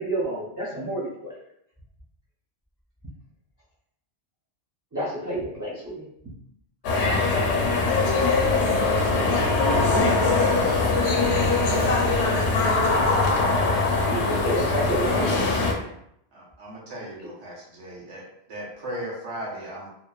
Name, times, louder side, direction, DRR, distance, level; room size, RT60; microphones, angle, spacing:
voice 1, 0.0-1.4 4.9-6.0 14.0-15.7, right 1 dB, 25° right, -8 dB, 0.4 m, -29 dB
sound 1, 6.8-15.7, left 3 dB, 90° left, 0.9 m, -22 dB
voice 2, 8.8-10.4 11.2-12.0, left 1 dB, 35° left, -4 dB, 0.5 m, -34 dB
voice 3, 16.3-18.2 18.5-19.9, right 1 dB, 85° right, -3 dB, 1.0 m, -37 dB
2.8 x 2.0 x 2.3 m, 0.75 s
omnidirectional pair, 1.1 m